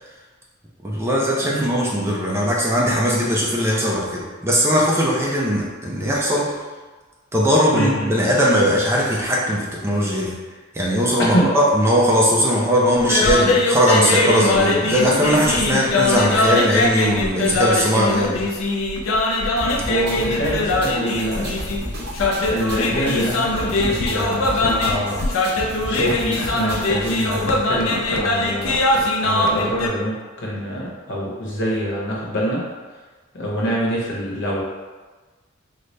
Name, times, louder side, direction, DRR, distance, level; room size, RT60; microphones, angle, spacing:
voice 1, 0.8-6.5 7.3-10.3 10.7-18.5, equal, 15° right, -4 dB, 0.4 m, -19 dB
voice 2, 7.7-8.1 11.3-11.5 19.9-21.5 22.4-25.2 25.8-28.7 29.2-32.6 33.3-34.6, equal, 60° left, -4 dB, 0.9 m, -25 dB
sound 1, 13.0-29.9, left 2 dB, 80° left, 0.4 m, -21 dB
sound 2, 19.6-27.6, equal, 55° right, 0.9 m, -33 dB
3.9 x 2.1 x 3.2 m, 1.3 s
head